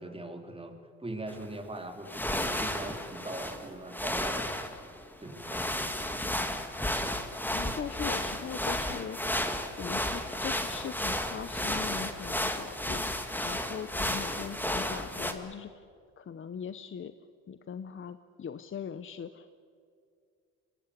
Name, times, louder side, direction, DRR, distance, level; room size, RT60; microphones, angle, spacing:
voice 1, 0.0-4.5 5.2-5.8, right 2 dB, 15° right, 5 dB, 3.1 m, -41 dB
sound 1, 1.3-1.4 2.0-15.3, left 1 dB, 5° left, 2.1 m, -33 dB
voice 2, 7.5-9.4 9.8-15.8 16.2-17.1 17.5-19.6, left 7 dB, 35° left, 12 dB, 0.9 m, -40 dB
24.0 x 18.0 x 8.5 m, 2.2 s
supercardioid pair, 80°, 33 cm